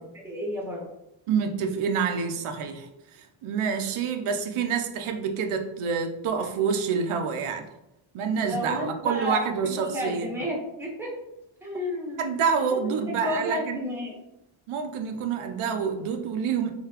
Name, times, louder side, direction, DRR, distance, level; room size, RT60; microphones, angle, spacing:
voice 1, 0.1-0.8 8.3-11.1 11.6-14.1, left 1 dB, 5° right, -3 dB, 1.0 m, -32 dB
voice 2, 1.3-7.7 8.1-10.3 12.2-13.8 14.7-16.7, right 6 dB, 80° right, 5 dB, 0.6 m, -27 dB
3.9 x 3.9 x 2.9 m, 0.87 s
wide cardioid pair, 180°, 49 cm